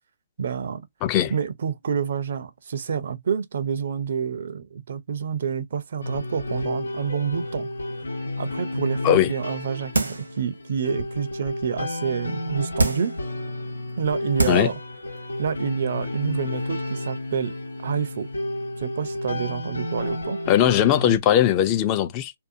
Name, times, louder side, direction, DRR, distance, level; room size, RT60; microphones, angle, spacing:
voice 1, 0.4-0.8 1.3-7.7 8.4-13.1 14.0-14.7 15.4-17.5 17.8-18.3 18.8-20.4, right 7 dB, 60° right, 0.5 m, -28 dB
voice 2, 1.0-1.3 9.0-9.3 14.5-14.7 20.5-22.3, left 11 dB, 30° left, 0.4 m, -19 dB
sound 1, 6.0-21.2, left 1 dB, 90° left, 1.0 m, -31 dB
sound 2, 9.9-10.4 10.9-11.0 12.8-13.2 13.9-14.0 14.4-14.8 15.2-15.3, right 2 dB, 90° right, 0.8 m, -24 dB
2.5 x 2.2 x 2.6 m
hypercardioid pair, 140°, 0 cm